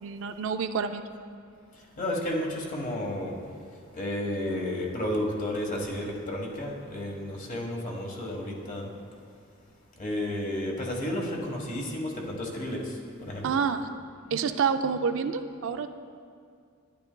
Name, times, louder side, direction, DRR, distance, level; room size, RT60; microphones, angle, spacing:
voice 1, 0.0-1.0 13.4-13.9 14.3-15.9, right 6 dB, 65° right, 8 dB, 0.4 m, -28 dB
voice 2, 2.0-3.4 3.9-8.9 10.0-12.9 13.2-13.6, left 1 dB, 40° left, 0 dB, 1.2 m, -32 dB
12.0 x 10.0 x 2.2 m, 2.2 s
head